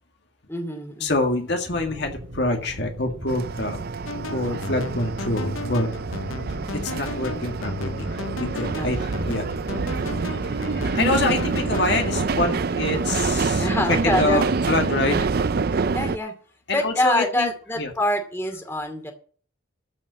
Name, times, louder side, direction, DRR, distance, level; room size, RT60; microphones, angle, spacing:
voice 1, 0.5-1.3 8.7-9.0 13.6-14.7 15.7-16.3 16.7-19.1, left 1 dB, 10° left, 4 dB, 2.5 m, -26 dB
voice 2, 1.0-3.9 4.3-5.9 6.8-9.5 10.0-15.2 16.7-17.5 17.8-17.9, left 2 dB, 55° left, 4 dB, 2.0 m, -26 dB
sound 1, 1.7-9.6, equal, 80° right, 4.2 m, -43 dB
sound 2, 3.3-16.2, right 4 dB, 50° right, 0.4 m, -26 dB
sound 3, 4.1-12.3, left 3 dB, 85° left, 0.7 m, -35 dB
14.5 x 5.4 x 8.1 m, 0.43 s
head